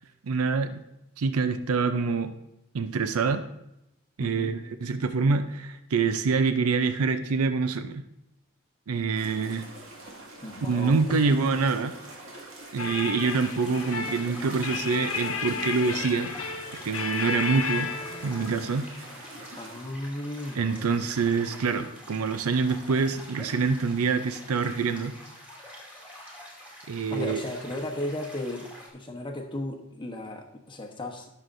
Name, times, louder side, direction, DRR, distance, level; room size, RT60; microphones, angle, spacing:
voice 1, 0.2-0.8 1.2-2.3 2.7-3.4 4.2-8.0 8.9-9.7 10.6-11.9 12.7-16.3 16.8-17.9 18.2-18.9 20.6-25.1 26.9-27.4, right 4 dB, 80° right, 10 dB, 0.5 m, -26 dB
voice 2, 4.2-4.5 10.4-11.4 19.1-20.8 27.1-31.3, left 1 dB, 20° left, 1 dB, 1.0 m, -35 dB
sound 1, 9.1-19.9, right 2 dB, 60° right, 2.0 m, -45 dB
sound 2, 12.8-18.8, left 5 dB, 70° left, 1.1 m, -33 dB
sound 3, 13.5-28.9, equal, 5° right, 2.5 m, -46 dB
18.5 x 6.5 x 2.6 m, 0.87 s
head